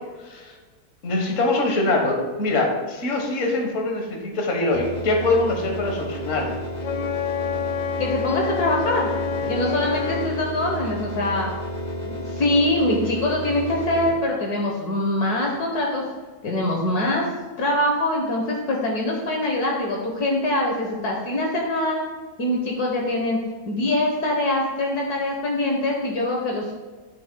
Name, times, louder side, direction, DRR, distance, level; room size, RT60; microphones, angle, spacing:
voice 1, 0.2-0.5 1.0-6.6, left 2 dB, 50° left, 1 dB, 1.5 m, -23 dB
sound 1, 4.7-14.1, equal, 25° left, 1.8 m, -31 dB
Wind instrument woodwind instrument, 6.8-10.4, left 7 dB, 85° left, 0.6 m, -28 dB
voice 2, 8.0-9.1 9.5-11.5 12.0-16.0 16.4-17.3 17.6-22.0 22.4-23.4 23.7-26.7, left 1 dB, 65° left, 0 dB, 1.6 m, -23 dB
11.5 x 6.5 x 2.2 m, 1.3 s
omnidirectional pair, 1.9 m